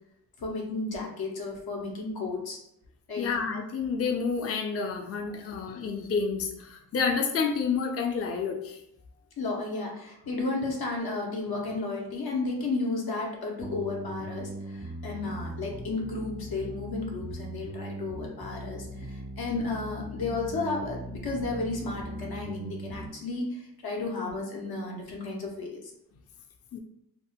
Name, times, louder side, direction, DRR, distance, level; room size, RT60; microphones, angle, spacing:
voice 1, 0.4-2.6 3.1-3.3 9.4-23.6 23.8-25.7, left 3 dB, 85° left, -2 dB, 0.8 m, -33 dB
voice 2, 3.2-8.8 26.7-26.8, left 5 dB, 40° left, 3 dB, 0.4 m, -29 dB
sound 1, 13.6-23.1, right 1 dB, 85° right, 1.3 m, -39 dB
3.5 x 2.0 x 2.2 m, 0.79 s
cardioid pair, 65°, 36 cm